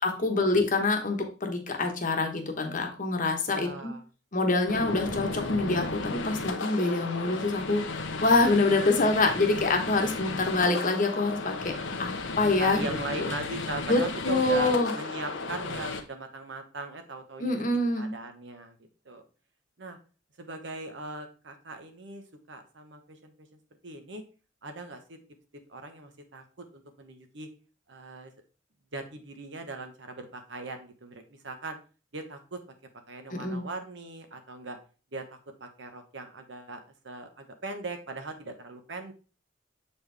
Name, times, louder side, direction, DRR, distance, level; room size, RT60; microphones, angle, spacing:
voice 1, 0.0-3.9 4.3-11.7 12.0-13.3 13.9-14.9 17.4-18.1 33.3-33.6, left 2 dB, 45° left, 4 dB, 1.1 m, -26 dB
voice 2, 3.5-4.0 9.9-10.1 12.6-17.5 17.9-18.7 19.0-19.2 19.8-20.0 20.4-23.3 23.8-24.2 24.6-25.2 25.7-26.4 26.7-27.5 27.9-28.3 28.9-31.8 32.1-32.6 33.1-34.8 35.1-39.1, right 2 dB, 65° right, 6 dB, 1.1 m, -39 dB
sound 1, 4.7-16.0, left 3 dB, 80° left, 0.8 m, -34 dB
7.3 x 4.4 x 3.3 m, 0.34 s
head